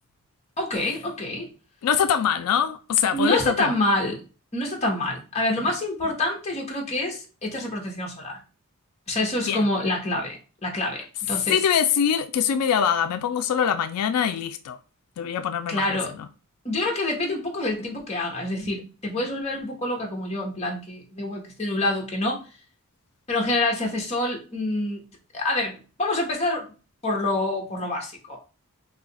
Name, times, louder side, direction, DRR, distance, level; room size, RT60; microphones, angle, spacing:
voice 1, 0.6-1.5 3.1-4.2 4.5-8.4 9.1-11.6 15.7-16.1 16.6-22.4 23.3-25.0 25.3-26.7 27.0-28.4, left 1 dB, 30° left, 0.9 m, -27 dB
voice 2, 1.8-3.7 9.5-9.7 11.5-14.8 15.2-16.3, left 8 dB, 90° left, 0.3 m, -23 dB
2.7 x 2.4 x 3.9 m
head